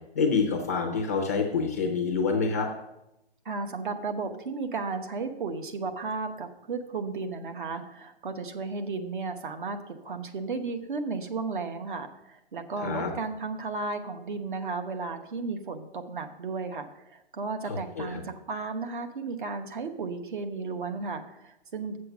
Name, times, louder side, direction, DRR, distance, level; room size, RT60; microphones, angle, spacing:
voice 1, 0.1-2.7 12.8-13.1 17.6-18.2, left 5 dB, 15° left, 1 dB, 0.5 m, -27 dB
voice 2, 3.4-22.0, right 4 dB, 50° right, 8 dB, 1.0 m, -34 dB
7.5 x 6.7 x 6.0 m, 0.87 s
hypercardioid pair, 165°, 32 cm